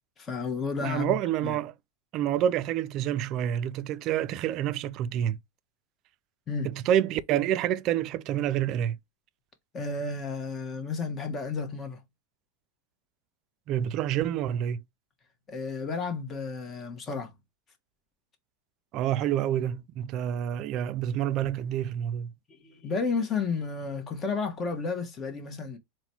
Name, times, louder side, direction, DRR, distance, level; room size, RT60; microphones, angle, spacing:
voice 1, 0.2-1.2 1.4-1.5 6.5-6.7 9.7-12.0 15.5-17.3 22.5-25.8, left 4 dB, 30° left, 1.1 m, -32 dB
voice 2, 0.8-1.7 2.1-5.4 6.6-9.0 13.7-14.8 18.9-22.3, right 10 dB, 45° right, 0.4 m, -28 dB
3.9 x 2.2 x 4.3 m
hypercardioid pair, 105°, 0 cm